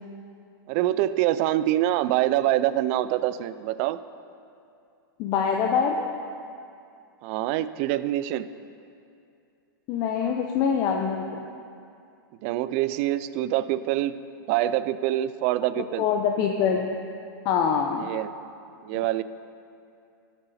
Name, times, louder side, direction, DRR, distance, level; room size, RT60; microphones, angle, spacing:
voice 1, 0.7-4.0 7.2-8.5 12.4-14.2 14.5-16.1 18.0-18.3 18.8-19.2, right 14 dB, 40° right, 15 dB, 0.3 m, -25 dB
voice 2, 5.2-6.1 9.9-11.2 16.0-16.9 17.4-18.1 18.9-19.0, left 7 dB, 35° left, 2 dB, 0.6 m, -24 dB
12.5 x 9.0 x 4.1 m, 2.5 s
supercardioid pair, 150°, 12 cm